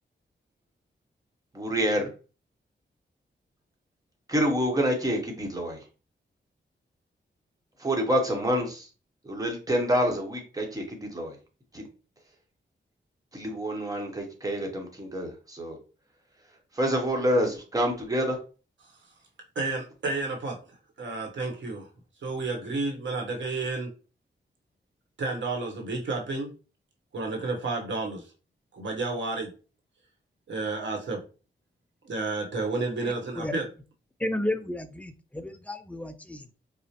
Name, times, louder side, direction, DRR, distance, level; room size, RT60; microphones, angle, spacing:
voice 1, 1.5-2.1 4.3-5.8 7.8-8.9 9.2-11.4 11.7-11.8 13.3-15.8 16.7-18.4, equal, 20° right, 1 dB, 0.9 m, -27 dB
voice 2, 19.5-20.6 21.0-21.9 22.2-23.9 25.2-26.5 27.1-28.2 28.7-29.5 30.5-31.2 32.0-33.7, right 3 dB, 75° right, 1 dB, 1.1 m, -31 dB
voice 3, 33.0-33.5 34.2-36.6, left 1 dB, 5° left, 8 dB, 0.3 m, -33 dB
4.9 x 2.1 x 2.8 m, 0.35 s
wide cardioid pair, 145°, 19 cm